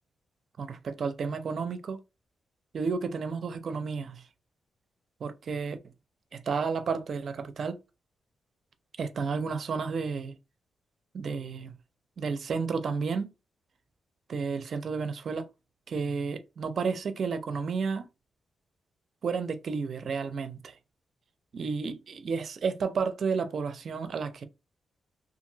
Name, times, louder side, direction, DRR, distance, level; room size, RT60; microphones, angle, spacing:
voice 1, 0.6-2.0 2.7-4.3 5.2-5.8 6.3-7.8 9.0-10.4 11.1-11.8 12.2-13.3 14.3-15.5 15.9-18.1 19.2-20.8 21.5-24.4, right 5 dB, 55° right, 0.4 m, -31 dB
2.8 x 2.5 x 2.6 m
wide cardioid pair, 135°, 0 cm